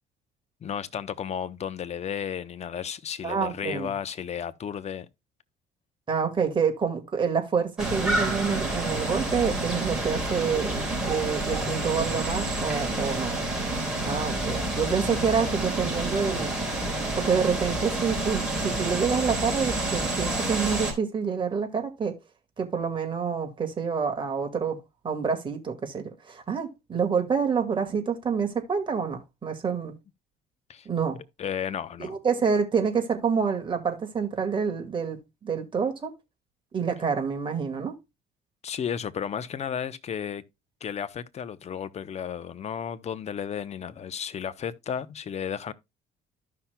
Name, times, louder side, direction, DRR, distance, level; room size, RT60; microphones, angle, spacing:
voice 1, 0.6-5.1 14.3-14.6 30.7-30.9 31.4-32.2 38.6-40.4 40.8-45.7, left 8 dB, 40° left, 0.8 m, -33 dB
voice 2, 3.2-3.9 6.1-13.3 14.0-16.5 17.2-22.2 22.6-24.8 25.0-29.9 30.9-31.2 32.0-36.1 36.7-37.9, right 6 dB, 30° right, 1.9 m, -27 dB
sound 1, 7.8-20.9, right 1 dB, 5° right, 4.2 m, -29 dB
14.5 x 5.7 x 2.2 m
cardioid pair, 110°, 17 cm